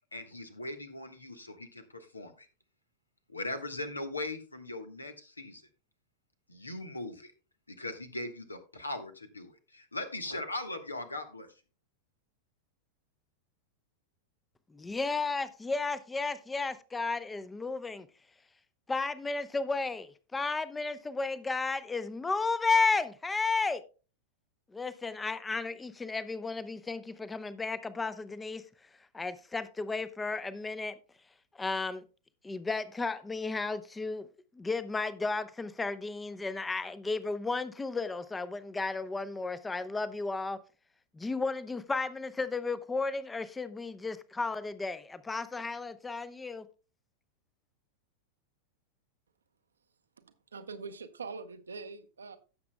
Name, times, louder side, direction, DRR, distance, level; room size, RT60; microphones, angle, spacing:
voice 1, 0.1-2.5 3.3-5.6 6.5-7.3 7.8-11.5, left 2 dB, 80° left, 1.2 m, -39 dB
voice 2, 14.7-18.1 18.9-23.8 24.7-28.6 29.1-30.9 31.6-32.0 32.4-34.3 34.6-40.6 41.1-46.7, left 4 dB, 10° left, 0.7 m, -33 dB
voice 3, 50.2-52.4, right 4 dB, 70° right, 0.8 m, -43 dB
16.5 x 6.9 x 2.2 m
figure-of-eight pair, 90°, 0 cm